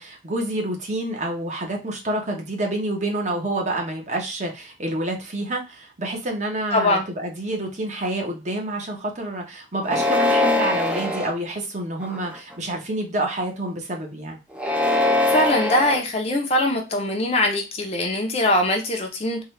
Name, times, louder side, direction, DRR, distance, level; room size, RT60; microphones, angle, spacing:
voice 1, 0.0-14.4, right 1 dB, 40° right, 1 dB, 0.9 m, -28 dB
voice 2, 6.7-7.1 14.9-19.4, left 1 dB, 35° left, 2 dB, 0.6 m, -22 dB
sound 1, 9.8-11.3 12.0-12.5 14.5-16.0, left 2 dB, 5° right, 0.5 m, -22 dB
3.7 x 2.3 x 3.1 m, 0.27 s
head